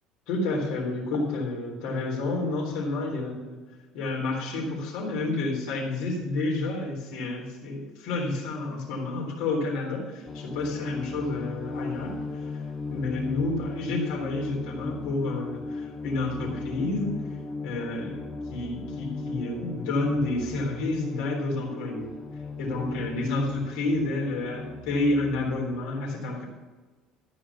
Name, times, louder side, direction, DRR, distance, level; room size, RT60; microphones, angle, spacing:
voice 1, 0.3-3.6 3.9-12.6 12.9-17.1 17.6-22.1 22.6-26.4, left 2 dB, 85° left, 0 dB, 3.6 m, -30 dB
sound 1, 10.3-25.5, left 3 dB, 20° left, 0.8 m, -37 dB
13.0 x 5.1 x 6.9 m, 1.3 s
cardioid pair, 150°, 0 cm